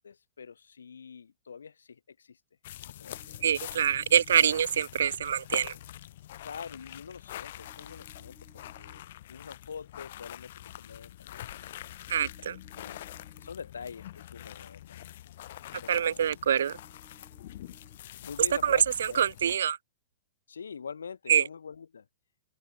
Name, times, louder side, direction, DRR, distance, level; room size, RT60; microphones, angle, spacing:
voice 1, 0.0-2.4 2.9-3.5 6.4-8.4 8.8-11.9 12.4-13.0 13.4-15.0 15.8-16.4 18.2-19.4 20.5-22.1, left 6 dB, 70° left, 2.7 m, -45 dB
sound 1, 2.6-19.6, left 13 dB, 50° left, 3.5 m, -45 dB
sound 2, 3.1-4.5 7.6-9.0 12.1-13.5 16.6-18.0, right 6 dB, 15° right, 4.9 m, -62 dB
voice 2, 3.4-5.7 12.1-12.5 15.9-16.7 18.6-18.8 19.2-19.8 21.3-21.4, right 8 dB, 60° right, 0.3 m, -25 dB
figure-of-eight pair, 110°, 0 cm